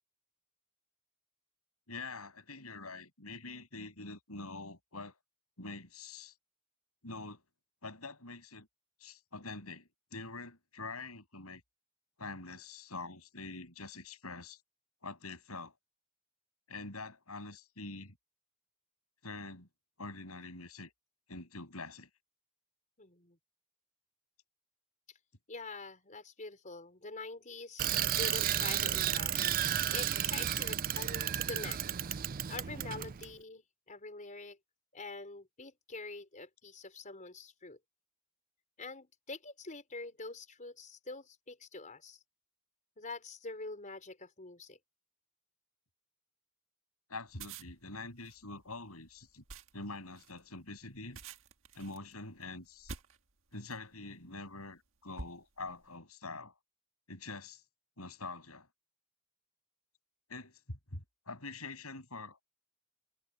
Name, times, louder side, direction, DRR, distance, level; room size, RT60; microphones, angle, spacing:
voice 1, 1.9-5.2 5.6-6.3 7.0-7.4 7.8-8.7 9.0-11.6 12.2-14.6 15.0-15.7 16.7-18.2 19.2-19.7 20.0-20.9 21.3-22.1 47.1-49.4 49.7-51.2 51.7-52.9 53.5-56.5 57.1-57.6 58.0-58.7 60.3-62.4, left 3 dB, 80° left, 7.4 m, -45 dB
voice 2, 23.0-23.4 25.5-31.8 32.5-34.6 34.9-37.8 38.8-42.2 43.0-44.8, left 3 dB, 35° left, 4.8 m, -45 dB
Bicycle, 27.8-33.3, right 11 dB, 40° right, 0.4 m, -33 dB
sound 1, 47.3-53.9 54.6-54.8 55.2-55.9, right 4 dB, 65° right, 1.7 m, -49 dB
head